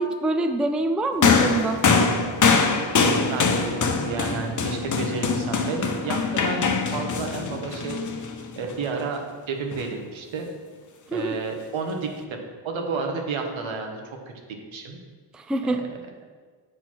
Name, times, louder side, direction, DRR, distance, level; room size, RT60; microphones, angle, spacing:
voice 1, 0.0-1.8 11.1-11.4 15.3-15.8, right 2 dB, ahead, 7 dB, 0.3 m, -25 dB
sound 1, 1.2-8.7 9.7-9.9, left 4 dB, 40° left, 0.7 m, -23 dB
voice 2, 2.6-8.0 8.6-10.5 11.1-14.2 14.7-15.0 15.6-15.9, right 4 dB, 80° right, 3 dB, 1.1 m, -31 dB
6.7 x 4.5 x 4.3 m, 1.5 s
cardioid pair, 60°, 46 cm